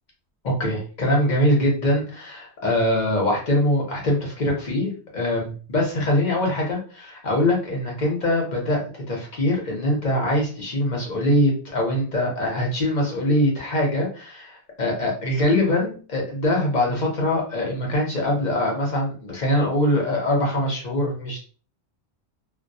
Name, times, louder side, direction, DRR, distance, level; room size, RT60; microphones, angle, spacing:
voice 1, 0.4-21.4, left 1 dB, 45° left, -1 dB, 0.8 m, -23 dB
2.2 x 2.1 x 2.6 m, 0.39 s
omnidirectional pair, 1.1 m